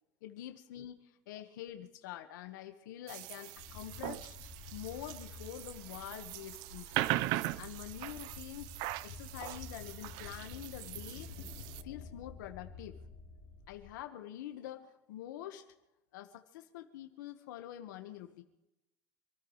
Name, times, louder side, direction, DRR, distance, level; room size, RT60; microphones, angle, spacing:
voice 1, 0.2-4.3 4.7-7.1 7.6-8.7 9.0-11.3 11.8-13.0 13.7-15.7 16.1-18.4, left 12 dB, 80° left, 6 dB, 1.5 m, -46 dB
sound 1, 3.1-11.8, right 17 dB, 45° right, 0.5 m, -40 dB
sound 2, 3.6-13.9, left 4 dB, 60° left, 3.6 m, -51 dB
27.0 x 14.0 x 3.3 m, 0.89 s
supercardioid pair, 170°, 10 cm